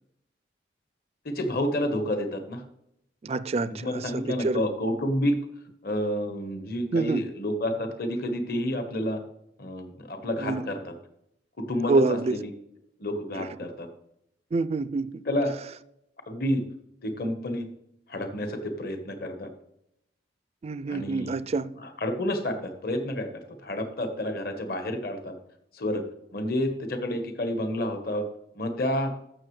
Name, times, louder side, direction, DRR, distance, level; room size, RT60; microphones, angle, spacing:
voice 1, 1.2-2.6 3.6-5.4 5.8-9.2 9.6-10.9 11.6-12.5 13.0-13.9 15.2-15.5 16.3-16.6 17.0-17.7 18.1-19.5 20.9-21.4 21.8-25.3 25.7-26.0 26.3-28.2 28.5-29.1, left 1 dB, 55° left, 1.2 m, -29 dB
voice 2, 3.2-4.6 6.9-7.2 10.4-10.6 11.9-12.4 13.4-13.5 14.5-15.2 20.6-21.7, right 3 dB, 35° right, 0.3 m, -26 dB
14.0 x 6.2 x 3.2 m
head